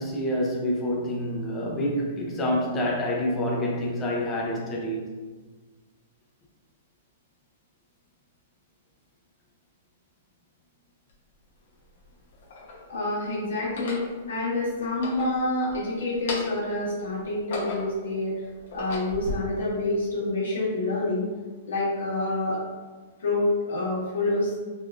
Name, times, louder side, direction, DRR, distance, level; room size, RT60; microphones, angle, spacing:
voice 1, 0.0-5.0, left 1 dB, 15° left, 0.4 m, -27 dB
sound 1, 11.1-11.2 12.0-12.9 13.6-14.1 14.8-15.8 16.1-16.7 17.2-18.1 18.6-19.3, left 2 dB, 60° left, 0.7 m, -35 dB
voice 2, 12.9-18.3 18.7-21.2 21.7-22.6 23.2-24.5, left 2 dB, 80° left, 1.2 m, -27 dB
3.4 x 2.4 x 2.3 m
hypercardioid pair, 175°, 0 cm